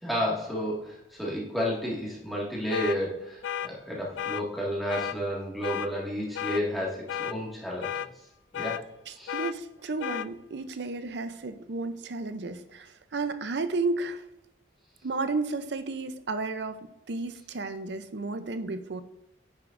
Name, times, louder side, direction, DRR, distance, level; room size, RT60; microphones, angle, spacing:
voice 1, 0.0-8.1 8.5-8.9 9.1-9.3, equal, ahead, -5 dB, 1.8 m, -31 dB
sound 1, 2.7-3.0 3.4-3.7 4.2-4.4 4.9-5.2 5.6-5.9 6.4-6.6 7.1-7.4 7.8-8.1 8.5-8.8 9.3-9.5 10.0-10.3, left 9 dB, 80° left, 0.3 m, -33 dB
voice 2, 9.1-14.2 15.0-19.0, right 3 dB, 70° right, 10 dB, 0.6 m, -33 dB
9.9 x 6.4 x 2.6 m, 0.88 s
head